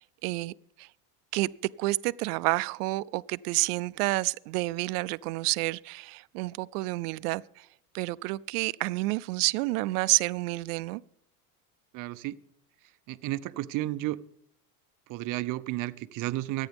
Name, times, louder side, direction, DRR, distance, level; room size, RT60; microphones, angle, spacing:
voice 1, 0.2-0.9 1.3-1.5 1.8-7.7 7.9-11.0, right 21 dB, 90° right, 0.6 m, -29 dB
voice 2, 11.9-12.4 13.1-14.2 15.1-16.7, right 17 dB, 45° right, 0.6 m, -32 dB
24.5 x 9.2 x 3.5 m
supercardioid pair, 130°, 45 cm